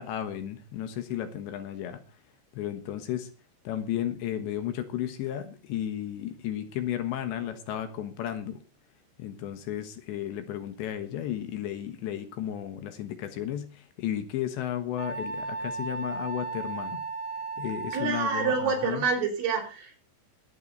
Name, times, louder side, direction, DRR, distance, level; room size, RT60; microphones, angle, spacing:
voice 1, 0.0-2.0 2.5-3.3 3.6-8.6 9.2-17.0 17.6-19.1, left 11 dB, 70° left, 9 dB, 3.3 m, -33 dB
Wind instrument woodwind instrument, 15.0-19.1, right 4 dB, 5° left, 6.7 m, -35 dB
voice 2, 17.9-20.0, right 5 dB, 75° right, 1 dB, 6.7 m, -27 dB
21.0 x 9.4 x 4.0 m, 0.32 s
omnidirectional pair, 5.7 m